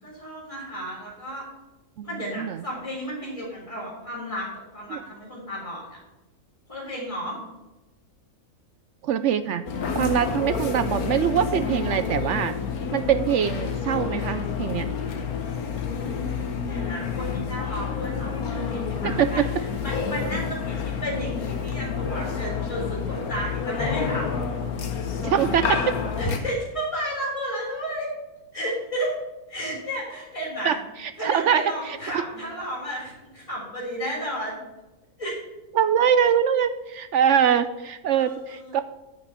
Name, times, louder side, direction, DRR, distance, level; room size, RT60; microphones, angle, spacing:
voice 1, 0.0-1.4 2.0-6.0 6.7-7.4 16.1-16.3 16.6-24.3 26.2-28.1 28.5-29.1 29.5-30.8 31.2-34.6 35.2-35.4 38.1-38.7, equal, 20° left, -4 dB, 3.6 m, -33 dB
voice 2, 9.0-9.7 9.9-12.5 12.9-14.9 19.0-19.5 25.2-26.0 30.6-32.2 35.7-38.8, right 8 dB, 70° right, 12 dB, 0.7 m, -23 dB
sound 1, 9.7-26.4, left 6 dB, 75° left, 1.6 m, -29 dB
9.2 x 6.2 x 8.0 m, 1.0 s
omnidirectional pair, 1.6 m